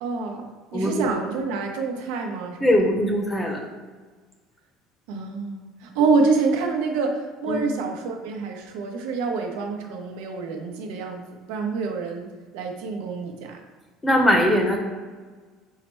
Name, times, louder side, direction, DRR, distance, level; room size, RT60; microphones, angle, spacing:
voice 1, 0.0-2.7 5.1-11.2 11.5-13.6, right 4 dB, 85° right, 2 dB, 0.8 m, -27 dB
voice 2, 0.7-1.1 2.6-3.6 7.5-7.6 14.0-14.8, equal, 15° left, 2 dB, 0.7 m, -20 dB
5.6 x 2.1 x 4.4 m, 1.4 s
cardioid pair, 140°, 0 cm